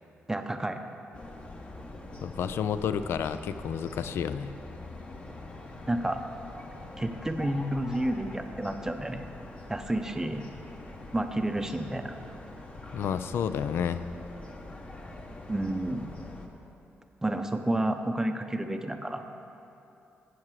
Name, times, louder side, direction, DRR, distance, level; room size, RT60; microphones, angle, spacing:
voice 1, 0.3-0.8 5.9-6.2 7.0-9.3 9.7-10.4 11.1-12.1 15.5-16.1 17.2-19.3, right 1 dB, 10° right, 7 dB, 0.6 m, -30 dB
sound 1, 1.1-16.5, left 2 dB, 30° left, 1.0 m, -44 dB
voice 2, 2.2-4.5 12.9-14.0, left 8 dB, 75° left, 12 dB, 0.4 m, -30 dB
13.0 x 7.9 x 4.8 m, 2.9 s
cardioid pair, 110°, 4 cm